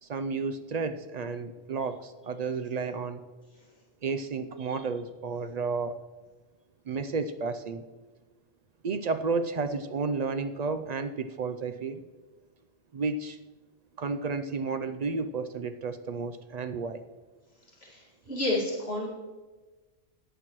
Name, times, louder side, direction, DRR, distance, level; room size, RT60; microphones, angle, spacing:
voice 1, 0.0-3.2 4.0-6.0 6.9-7.8 8.8-12.0 12.9-13.4 14.0-17.0, right 4 dB, 60° right, 10 dB, 0.4 m, -32 dB
voice 2, 18.3-19.1, left 1 dB, 65° left, -4 dB, 2.3 m, -29 dB
14.5 x 9.2 x 3.0 m, 1.3 s
omnidirectional pair, 1.1 m